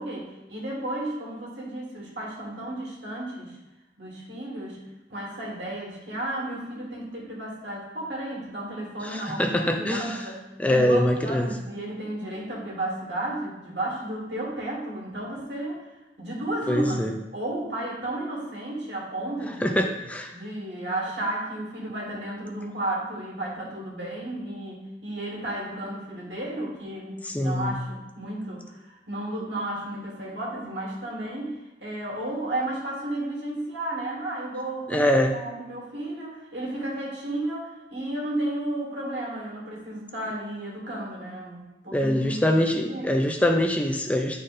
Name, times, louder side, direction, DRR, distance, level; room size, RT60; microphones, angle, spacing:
voice 1, 0.0-3.6 4.0-4.8 5.1-10.4 10.7-15.8 16.2-17.0 17.3-19.8 20.3-43.3, right 1 dB, 75° right, -3 dB, 1.9 m, -33 dB
voice 2, 9.0-10.2 10.6-11.5 16.7-17.1 19.6-20.3 27.2-27.8 34.9-35.3 41.9-44.4, left 1 dB, 10° left, 3 dB, 0.4 m, -24 dB
9.8 x 4.2 x 2.5 m, 1.0 s
head